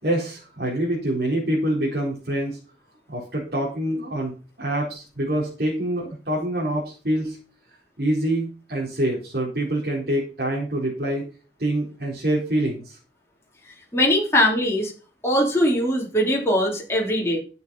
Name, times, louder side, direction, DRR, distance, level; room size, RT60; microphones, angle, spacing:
voice 1, 0.0-2.6 3.1-7.4 8.0-11.2 11.6-13.0, right 1 dB, 60° right, -4 dB, 4.3 m, -25 dB
voice 2, 13.9-14.9 15.2-17.4, equal, 15° left, -2 dB, 3.6 m, -21 dB
12.0 x 7.9 x 5.6 m, 0.36 s
head